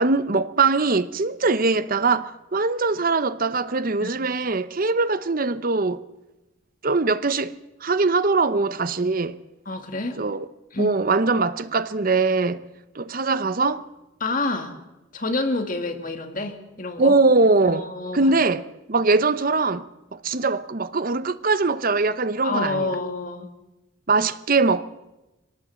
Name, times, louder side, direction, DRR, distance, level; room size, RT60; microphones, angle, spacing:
voice 1, 0.0-6.0 6.8-9.4 10.2-10.5 10.8-12.6 12.9-13.8 17.0-17.9 18.1-22.9 24.1-24.8, right 3 dB, 40° right, 0.8 m, -22 dB
voice 2, 9.7-10.2 10.7-10.9 14.2-14.8 15.1-17.1 17.6-18.3 22.4-23.5, left 2 dB, 40° left, 2.0 m, -28 dB
22.0 x 18.0 x 7.6 m
head